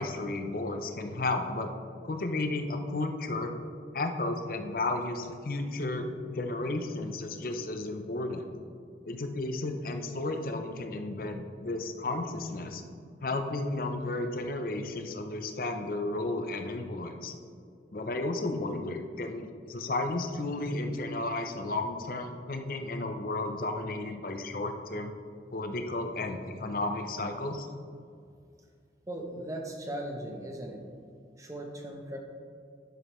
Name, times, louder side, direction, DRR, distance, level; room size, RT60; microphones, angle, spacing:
voice 1, 0.0-1.7 2.0-3.5 3.9-8.4 9.0-12.8 13.2-17.3 17.9-25.1 25.5-27.7, left 2 dB, 50° left, 6 dB, 0.6 m, -33 dB
voice 2, 29.1-30.8 31.4-32.2, right 1 dB, 20° right, 2 dB, 0.8 m, -38 dB
11.0 x 6.3 x 3.1 m, 2.3 s
head